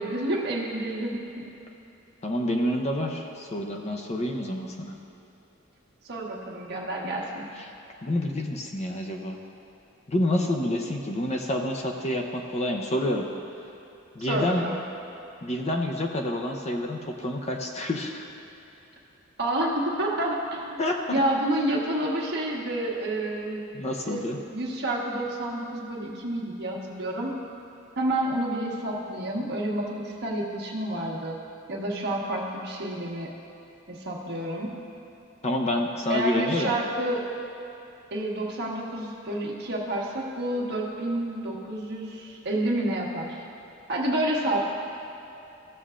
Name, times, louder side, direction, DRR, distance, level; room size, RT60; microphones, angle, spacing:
voice 1, 0.0-1.5 6.0-7.5 14.2-14.8 19.4-20.8 21.1-23.6 24.1-27.3 28.0-31.4 31.7-33.3 33.9-34.7 36.1-37.2 38.1-43.4 43.9-44.6, right 1 dB, 55° right, -3 dB, 1.3 m, -29 dB
voice 2, 2.2-5.0 8.0-9.4 10.1-13.3 14.2-14.6 15.4-18.2 20.8-21.0 23.7-24.4 35.4-36.7, left 1 dB, 35° left, 2 dB, 0.6 m, -28 dB
15.5 x 6.8 x 2.5 m, 2.8 s
head